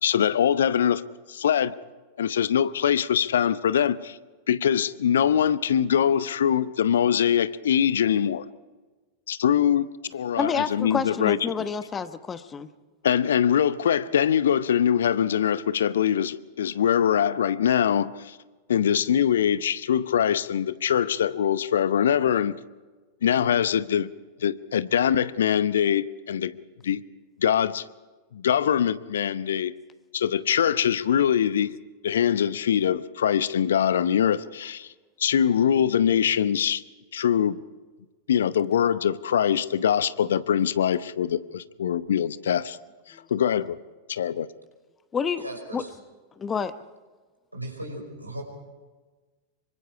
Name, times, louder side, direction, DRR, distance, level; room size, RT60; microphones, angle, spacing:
voice 1, 0.0-1.0 1.3-1.7 2.2-4.2 4.5-8.4 9.3-11.4 13.0-18.4 18.7-22.5 23.2-24.1 24.4-26.5 26.8-27.0 27.4-27.8 28.3-29.7 30.1-31.8 32.0-34.9 35.2-36.8 37.1-37.6 38.3-42.8 43.3-43.8 44.1-44.5, left 9 dB, 65° left, 17 dB, 0.8 m, -23 dB
voice 2, 10.4-12.7 45.1-45.5 45.7-45.8 46.4-46.7, left 6 dB, 20° left, 12 dB, 1.0 m, -28 dB
voice 3, 45.4-45.9 47.5-48.4, right 1 dB, 85° right, 1 dB, 5.4 m, -37 dB
26.5 x 24.0 x 4.9 m, 1.3 s
figure-of-eight pair, 90°, 0 cm